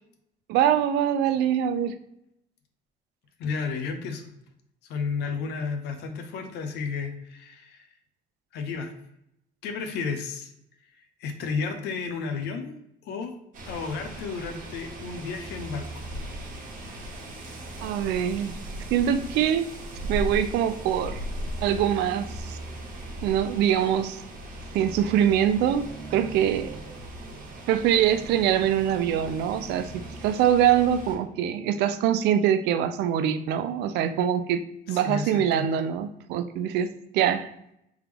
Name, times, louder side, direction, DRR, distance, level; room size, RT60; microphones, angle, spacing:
voice 1, 0.5-2.0 17.8-18.6 18.9-19.6 20.0-21.2 21.6-22.6 23.2-24.2 24.7-26.7 27.7-34.6 34.9-37.5, right 10 dB, 80° right, 10 dB, 0.4 m, -24 dB
voice 2, 3.4-4.3 4.9-7.9 8.5-8.9 9.6-10.5 11.2-12.8 13.0-13.3 13.6-16.1 34.9-35.7, left 5 dB, 80° left, 6 dB, 0.7 m, -32 dB
sound 1, 13.5-31.1, right 1 dB, 55° right, 1.2 m, -38 dB
3.6 x 3.0 x 3.4 m, 0.78 s
cardioid pair, 110°, 17 cm